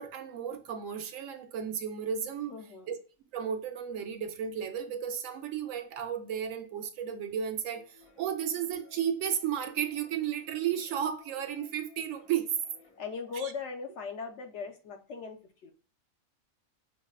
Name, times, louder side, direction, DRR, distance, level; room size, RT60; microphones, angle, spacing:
voice 1, 0.0-2.5 2.9-3.0 3.3-12.5 13.4-13.5, right 8 dB, 75° right, 0.9 m, -33 dB
voice 2, 2.5-2.9 13.0-15.7, left 5 dB, 65° left, 0.8 m, -39 dB
sound 1, 7.7-13.1, left 4 dB, 90° left, 1.4 m, -59 dB
5.4 x 2.2 x 2.3 m
omnidirectional pair, 1.4 m